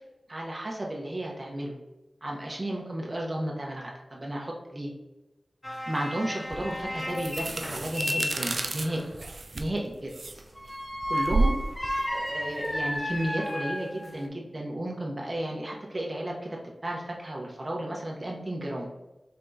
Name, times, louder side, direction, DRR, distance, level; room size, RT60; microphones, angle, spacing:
voice 1, 0.3-1.7 2.2-4.9 5.9-9.0 9.5-10.1 11.1-11.5 12.1-16.6 16.8-18.9, right 1 dB, 35° right, -2 dB, 0.8 m, -33 dB
sound 1, 5.6-9.1 10.6-14.3, left 1 dB, 20° left, 0.5 m, -33 dB
Biting Apple, 6.5-13.3, right 2 dB, 70° right, 0.3 m, -32 dB
4.4 x 3.5 x 2.6 m, 1.0 s
cardioid pair, 45°, 0 cm